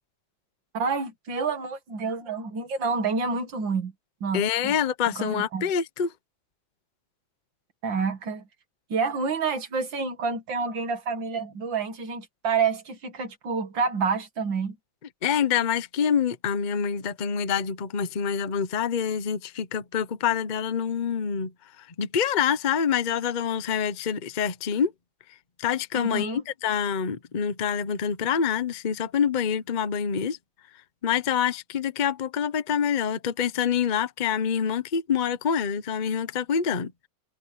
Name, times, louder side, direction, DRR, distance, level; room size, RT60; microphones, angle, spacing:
voice 1, 0.7-3.9 4.2-4.8 5.2-5.7 7.8-8.4 8.9-14.8 25.9-26.4, right 5 dB, 70° right, 2.8 m, -28 dB
voice 2, 4.3-6.1 15.2-21.5 22.0-24.9 25.6-30.4 31.0-37.1, left 7 dB, 40° left, 0.6 m, -26 dB
omnidirectional pair, 2.2 m